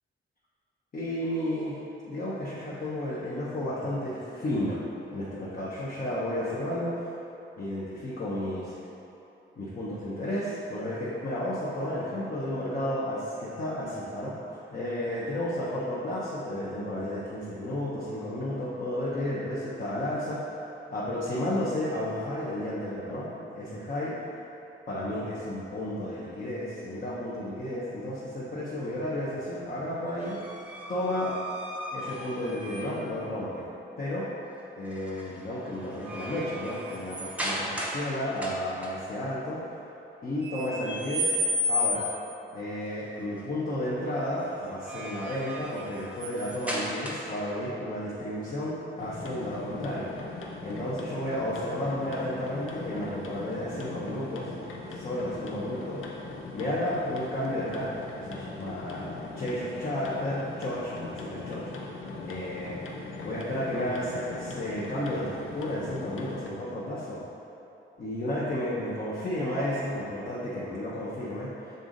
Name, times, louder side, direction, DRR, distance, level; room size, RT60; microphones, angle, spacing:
voice 1, 0.9-1.8 2.1-4.8 5.1-7.1 7.6-8.7 9.6-14.3 14.7-20.5 20.9-24.2 24.9-30.4 30.9-31.3 31.9-33.7 34.0-34.3 34.7-39.7 40.2-41.4 41.7-42.1 42.5-54.5 54.9-56.0 56.5-61.7 62.2-62.8 63.2-67.2 68.0-71.7, left 1 dB, 45° left, -9 dB, 0.9 m, -32 dB
sound 1, 30.2-33.1 34.9-35.2 35.6-38.1 38.4-38.9 40.4-42.3 44.6-47.5, left 1 dB, 5° right, 0.7 m, -33 dB
sound 2, 49.0-66.5, left 3 dB, 90° left, 0.7 m, -40 dB
6.8 x 3.8 x 3.9 m, 2.9 s
wide cardioid pair, 160°, 20 cm